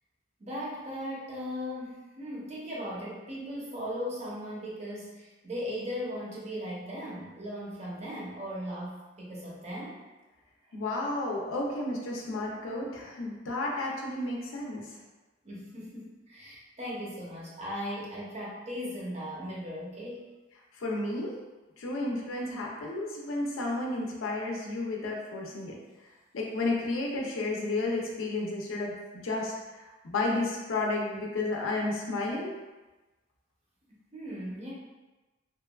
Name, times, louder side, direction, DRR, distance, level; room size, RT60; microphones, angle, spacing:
voice 1, 0.4-10.0 15.4-20.3 33.9-34.7, equal, 35° right, -5 dB, 0.6 m, -38 dB
voice 2, 10.7-14.9 20.8-21.4 21.8-25.8 26.3-32.5, left 2 dB, 85° left, -2 dB, 0.5 m, -32 dB
2.9 x 2.2 x 2.2 m, 1.2 s
head